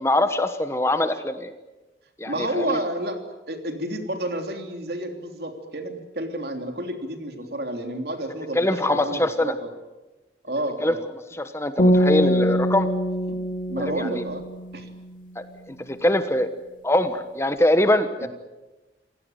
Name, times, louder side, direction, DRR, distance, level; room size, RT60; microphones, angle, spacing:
voice 1, 0.0-1.5 2.2-2.8 8.5-9.5 10.8-10.9 11.3-12.9 13.9-14.2 15.4-16.5 16.8-18.3, left 1 dB, 15° left, 9 dB, 1.3 m, -23 dB
voice 2, 2.3-9.7 10.4-11.0 13.7-14.4 14.7-14.9 18.2-18.3, right 1 dB, 60° right, 5 dB, 3.3 m, -30 dB
sound 1, 11.8-15.0, equal, 50° left, 2.8 m, -23 dB
27.5 x 17.5 x 9.3 m, 1.1 s
head